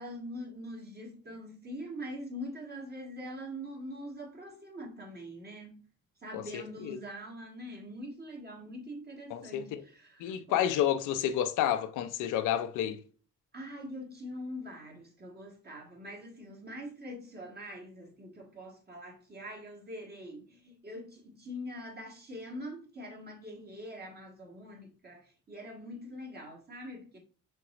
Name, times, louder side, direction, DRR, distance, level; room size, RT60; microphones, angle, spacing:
voice 1, 0.0-5.8 6.2-10.6 13.5-27.2, equal, 30° right, 1.7 m, -43 dB
voice 2, 6.3-7.0 9.3-9.8 10.2-13.0, left 10 dB, 90° left, 0.5 m, -30 dB
4.5 x 3.9 x 2.5 m
cardioid pair, 90°, 30 cm